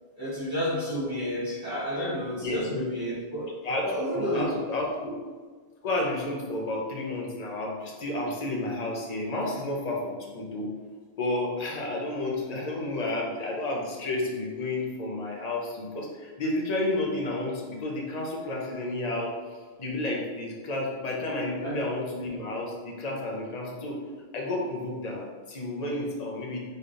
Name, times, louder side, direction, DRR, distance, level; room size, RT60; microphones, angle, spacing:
voice 1, 0.2-3.6 3.8-4.7 21.6-21.8, equal, 20° right, -10 dB, 1.1 m, -31 dB
voice 2, 2.4-2.9 3.6-5.1 5.8-10.7 11.2-19.3 19.8-24.0 24.3-26.6, left 2 dB, 45° left, -2 dB, 0.8 m, -31 dB
4.1 x 3.3 x 2.5 m, 1.5 s
omnidirectional pair, 1.0 m